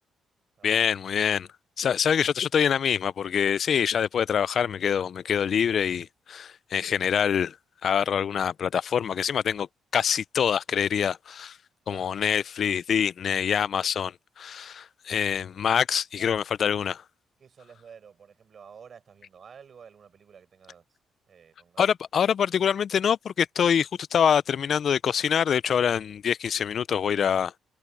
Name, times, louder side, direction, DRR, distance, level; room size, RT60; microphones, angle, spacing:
voice 1, 0.6-1.5 1.8-7.6 7.8-9.7 9.9-11.6 11.9-17.0 21.8-27.6, left 8 dB, 55° left, 0.5 m, -25 dB
voice 2, 11.9-12.2 16.2-16.4 17.4-20.8 21.3-21.9, right 7 dB, 50° right, 7.7 m, -50 dB
cardioid pair, 90°, 0 cm